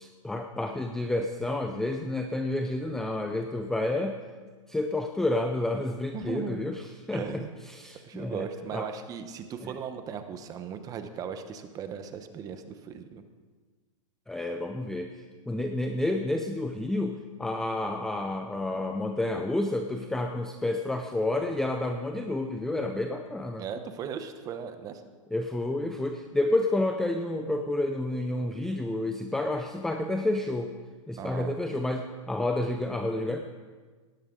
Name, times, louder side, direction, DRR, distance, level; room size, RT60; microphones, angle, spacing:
voice 1, 0.0-4.2 4.7-8.9 9.6-9.7 14.3-23.6 25.3-30.7 31.1-33.4, left 2 dB, 5° left, 5 dB, 0.4 m, -30 dB
voice 2, 6.1-6.6 7.1-7.5 8.0-13.2 23.6-25.0 31.2-31.5, right 7 dB, 20° right, 9 dB, 1.0 m, -37 dB
18.0 x 13.5 x 3.8 m, 1.4 s
hypercardioid pair, 150°, 17 cm